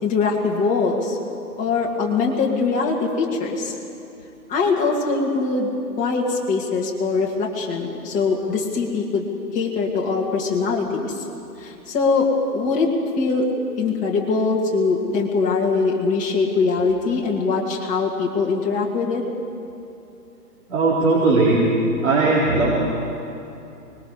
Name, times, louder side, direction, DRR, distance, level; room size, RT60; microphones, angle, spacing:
voice 1, 0.0-1.2 1.6-3.7 4.5-5.7 6.0-9.3 9.5-11.2 11.6-12.9 13.2-13.5 13.8-19.2, left 4 dB, 15° left, -1 dB, 2.0 m, -22 dB
voice 2, 20.7-21.6 22.0-22.7, right 3 dB, 55° right, -8 dB, 4.7 m, -18 dB
25.0 x 21.0 x 4.9 m, 2.8 s
hypercardioid pair, 145°, 47 cm